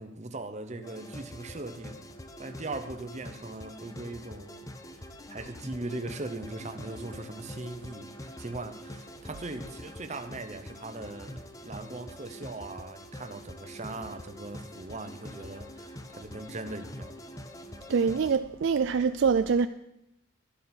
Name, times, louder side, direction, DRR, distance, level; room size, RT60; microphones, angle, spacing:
voice 1, 0.0-2.0 2.4-4.7 5.3-17.2, right 2 dB, 30° right, 0.8 m, -40 dB
sound 1, 0.8-18.4, equal, 15° left, 0.6 m, -45 dB
voice 2, 17.9-19.7, right 5 dB, 60° right, 0.3 m, -24 dB
13.0 x 10.5 x 4.4 m
head